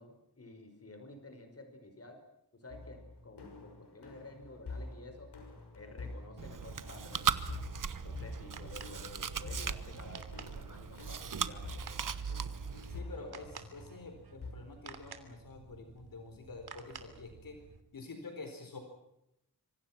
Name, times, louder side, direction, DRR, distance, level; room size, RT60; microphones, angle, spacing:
voice 1, 0.0-2.2 2.5-5.3 5.7-7.6 8.0-12.1 13.2-13.5, left 2 dB, 35° left, 6 dB, 5.3 m, -52 dB
sound 1, 2.7-14.5, left 3 dB, 85° left, 6.6 m, -47 dB
Chewing mastication, 6.4-13.0, right 6 dB, 55° right, 1.2 m, -38 dB
sound 2, 8.2-17.8, right 5 dB, 75° right, 3.1 m, -53 dB
voice 2, 12.9-17.6 17.9-18.8, left 3 dB, 60° left, 5 dB, 4.5 m, -47 dB
26.0 x 25.5 x 6.0 m, 0.83 s
wide cardioid pair, 155°, 39 cm